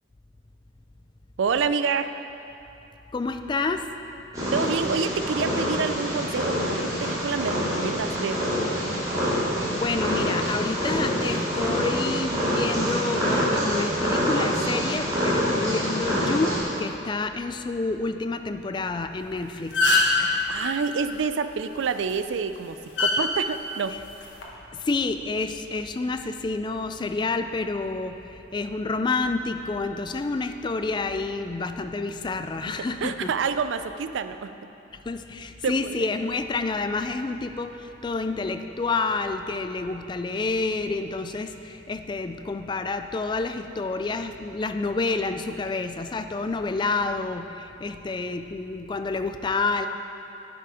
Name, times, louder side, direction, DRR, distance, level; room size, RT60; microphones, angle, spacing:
voice 1, 1.4-2.1 4.5-8.4 20.2-24.0 33.0-34.5 35.6-36.1, right 5 dB, 75° right, 11 dB, 0.4 m, -28 dB
voice 2, 3.1-3.9 9.2-9.4 9.7-19.8 24.7-28.2 28.5-33.3 34.9-49.9, left 3 dB, 25° left, 8 dB, 0.3 m, -29 dB
Purr, 4.3-16.6, equal, 20° right, 2.2 m, -26 dB
sound 1, 19.2-19.3 19.6-20.2 21.9-22.1 23.0-23.1 24.2-24.4, left 3 dB, 70° left, 1.3 m, -21 dB
11.0 x 5.8 x 4.8 m, 2.8 s
head